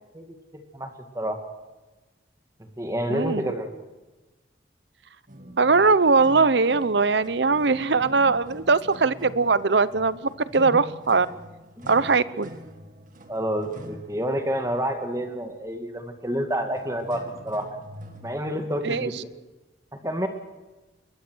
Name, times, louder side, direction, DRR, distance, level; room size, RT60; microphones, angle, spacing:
voice 1, 0.5-1.4 2.8-3.8 10.6-10.8 11.8-11.9 13.3-17.8 18.2-19.1 20.0-20.3, equal, 20° right, 5 dB, 1.9 m, -29 dB
voice 2, 3.1-3.4 5.6-10.2 10.5-11.3 11.9-12.5 18.8-19.1, right 4 dB, 75° right, 16 dB, 0.8 m, -20 dB
sound 1, 5.3-18.3, right 1 dB, 45° right, 2.2 m, -45 dB
21.5 x 21.0 x 6.3 m, 1.2 s
head